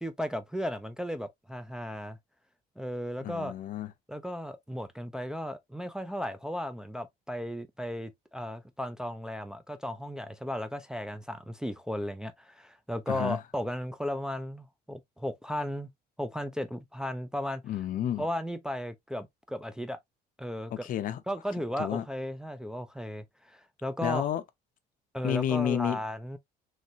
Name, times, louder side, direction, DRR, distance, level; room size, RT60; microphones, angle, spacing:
voice 1, 0.0-2.2 2.8-3.5 4.1-15.9 16.2-17.6 18.2-20.0 20.4-20.9 21.3-24.3 25.1-26.4, equal, 5° right, 0.3 m, -35 dB
voice 2, 3.2-3.9 13.1-13.4 17.6-18.3 20.7-21.2 21.8-22.0 24.0-24.4 25.2-26.0, left 10 dB, 55° left, 0.5 m, -30 dB
3.2 x 2.8 x 2.4 m
cardioid pair, 110°, 17 cm